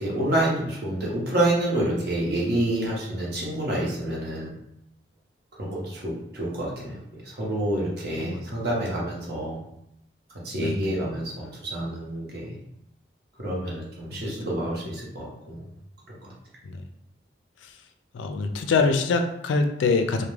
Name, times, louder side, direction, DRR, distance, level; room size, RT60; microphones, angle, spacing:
voice 1, 0.0-4.5 5.6-9.6 10.4-12.6 13.4-15.6, right 1 dB, 60° right, -4 dB, 0.8 m, -28 dB
voice 2, 10.5-10.9 16.7-16.8 18.1-20.3, left 4 dB, 85° left, 6 dB, 0.3 m, -24 dB
2.3 x 2.1 x 3.1 m, 0.79 s
head